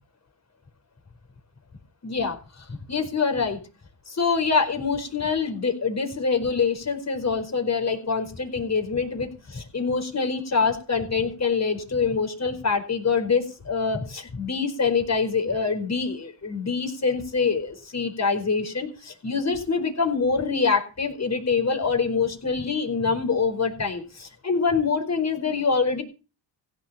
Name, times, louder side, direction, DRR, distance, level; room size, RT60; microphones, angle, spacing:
voice 1, 2.0-3.6 4.1-26.0, left 5 dB, 35° left, 5 dB, 4.6 m, -25 dB
16.0 x 7.5 x 8.5 m, 0.34 s
cardioid pair, 90°, 47 cm